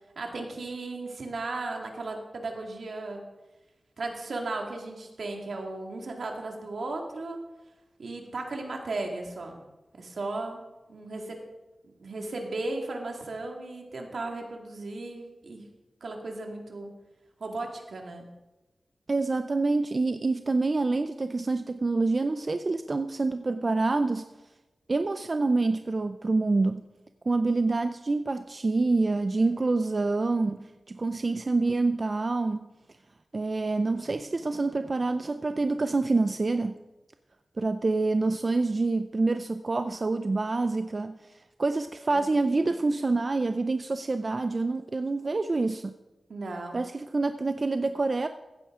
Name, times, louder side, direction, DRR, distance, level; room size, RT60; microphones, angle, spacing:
voice 1, 0.2-3.2 4.0-7.4 8.0-9.6 9.9-10.6 10.9-11.4 12.0-15.7 16.0-16.9 17.4-18.3 46.3-46.8, right 2 dB, 80° right, 2 dB, 2.0 m, -35 dB
voice 2, 19.1-24.3 24.9-26.8 27.3-32.7 33.3-36.8 37.6-41.2 41.6-45.9 46.7-48.3, right 3 dB, 45° right, 9 dB, 0.5 m, -27 dB
15.0 x 9.9 x 3.7 m, 1.1 s
wide cardioid pair, 90°, 0 cm